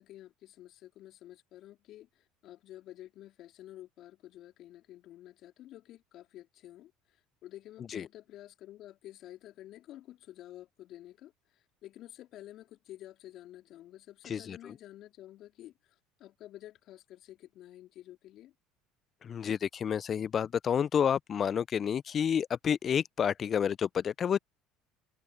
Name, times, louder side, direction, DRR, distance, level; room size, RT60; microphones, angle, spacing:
voice 1, 0.0-6.9 7.4-11.3 11.8-15.7 16.2-18.5, left 13 dB, 55° left, 3.5 m, -50 dB
voice 2, 14.3-14.7 19.2-24.4, left 8 dB, 40° left, 0.5 m, -29 dB
hypercardioid pair, 65°, 0 cm